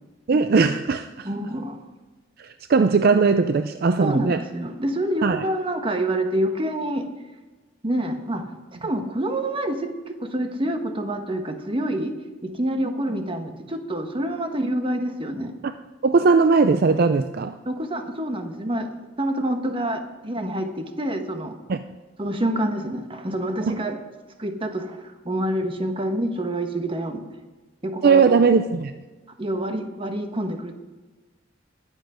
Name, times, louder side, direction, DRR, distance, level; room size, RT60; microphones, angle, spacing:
voice 1, 0.3-1.3 2.4-4.4 5.2-5.4 16.0-17.6 21.7-21.8 23.7-23.8 28.0-28.9, right 4 dB, 55° right, 10 dB, 0.4 m, -19 dB
voice 2, 1.2-1.8 4.0-7.1 7.8-8.5 8.8-12.1 12.4-15.5 17.7-18.9 19.2-21.5 22.2-24.0 24.4-25.0 25.2-27.2 27.8-28.4 29.4-30.7, right 1 dB, 30° right, 6 dB, 1.2 m, -27 dB
20.5 x 8.2 x 5.0 m, 1.2 s
head